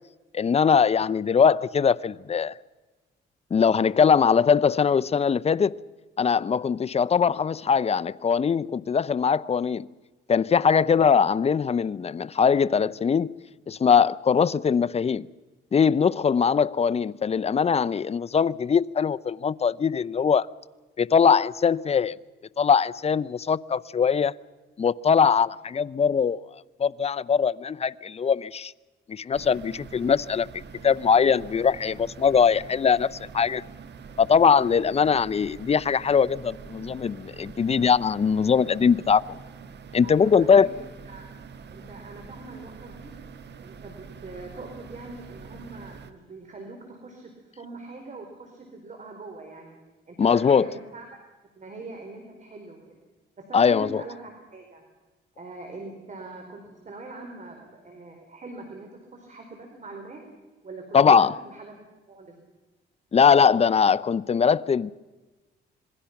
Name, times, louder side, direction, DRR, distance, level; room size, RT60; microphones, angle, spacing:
voice 1, 0.3-2.5 3.5-5.8 6.2-9.9 10.3-13.3 13.7-15.3 15.7-20.5 21.0-22.2 22.6-24.3 24.8-26.4 26.8-28.7 29.1-33.6 34.2-39.2 39.9-40.7 50.2-50.7 53.5-54.0 60.9-61.3 63.1-64.9, left 6 dB, 30° left, 0.6 m, -21 dB
sound 1, 29.3-46.1, right 5 dB, 60° right, 1.5 m, -45 dB
voice 2, 40.0-40.7 41.0-41.4 41.7-43.2 43.6-49.8 50.1-51.1 51.6-53.0 53.4-54.8 55.4-60.3 60.6-61.8 62.1-62.3, right 2 dB, 40° right, 4.2 m, -42 dB
26.5 x 21.0 x 5.9 m
cardioid pair, 90°, 20 cm